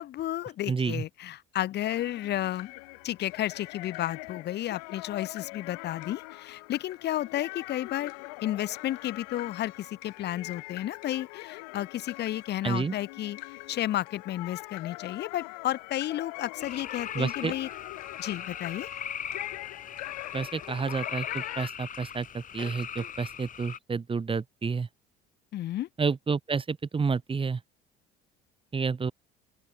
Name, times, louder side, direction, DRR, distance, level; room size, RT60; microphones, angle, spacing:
voice 1, 0.0-2.7 3.0-8.1 8.4-13.4 13.7-17.7 18.2-18.9 25.5-25.9, left 13 dB, 60° left, 3.0 m, -32 dB
voice 2, 0.7-1.0 12.6-12.9 17.1-17.5 20.3-24.9 26.0-27.6 28.7-29.1, right 5 dB, 25° right, 2.8 m, -30 dB
sound 1, 1.8-21.7, left 27 dB, 85° left, 2.5 m, -43 dB
sound 2, 16.6-23.8, left 8 dB, 45° left, 3.5 m, -39 dB
open air
supercardioid pair, 80°, 20 cm